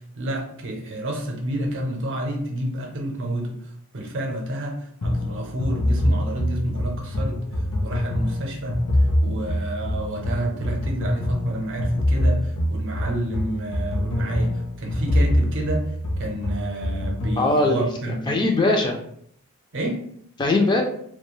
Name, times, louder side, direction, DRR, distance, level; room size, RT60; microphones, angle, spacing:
voice 1, 0.1-8.8 9.2-15.9 16.2-18.4 19.7-20.0, right 1 dB, 55° right, 1 dB, 0.6 m, -30 dB
sound 1, 5.0-17.5, left 1 dB, 65° left, 0.6 m, -24 dB
voice 2, 17.4-19.0 20.4-20.8, left 2 dB, 20° left, 2 dB, 0.3 m, -21 dB
2.3 x 2.2 x 3.0 m, 0.66 s
head